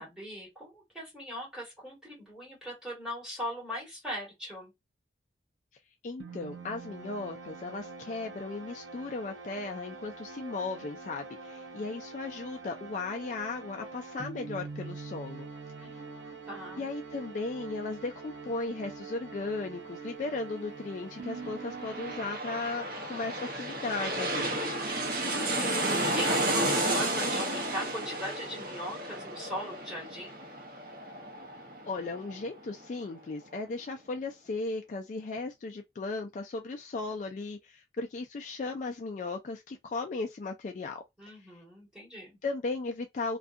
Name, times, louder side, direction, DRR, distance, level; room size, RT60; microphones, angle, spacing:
voice 1, 0.0-4.7 15.8-16.9 24.9-30.3 41.2-42.4, equal, 5° right, 1.5 m, -40 dB
voice 2, 6.0-15.5 16.8-24.6 31.9-41.0 42.4-43.4, left 3 dB, 45° left, 0.3 m, -36 dB
sound 1, 6.2-22.9, right 4 dB, 90° right, 0.6 m, -44 dB
sound 2, 21.5-32.8 33.2-33.3, right 1 dB, 50° right, 0.7 m, -32 dB
2.6 x 2.3 x 2.4 m
head